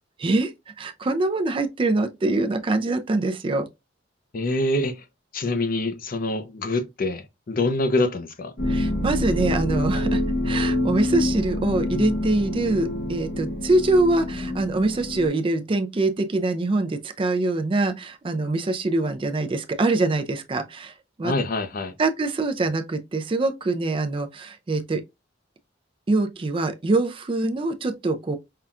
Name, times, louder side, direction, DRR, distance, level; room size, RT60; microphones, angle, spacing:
voice 1, 0.2-0.5 0.8-3.7 8.7-20.9 21.2-21.3 22.0-25.0 26.1-28.4, right 2 dB, 30° right, 0.4 m, -24 dB
voice 2, 4.3-5.0 5.3-8.5 21.2-21.9, left 2 dB, 50° left, 0.6 m, -25 dB
sound 1, 8.6-15.3, left 1 dB, 65° left, 1.2 m, -26 dB
5.5 x 2.3 x 2.4 m
head